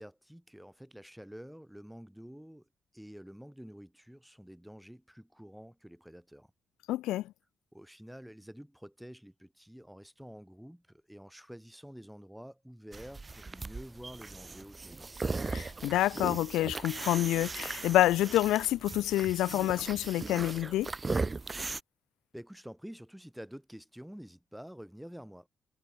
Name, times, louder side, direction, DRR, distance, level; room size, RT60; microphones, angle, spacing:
voice 1, 0.0-2.7 2.9-6.5 7.7-15.1 22.3-25.5, equal, 5° right, 7.3 m, -49 dB
voice 2, 6.9-7.2 15.5-20.9, left 15 dB, 85° left, 0.4 m, -28 dB
sound 1, 12.9-21.8, right 3 dB, 35° right, 0.6 m, -38 dB
supercardioid pair, 50°, 0 cm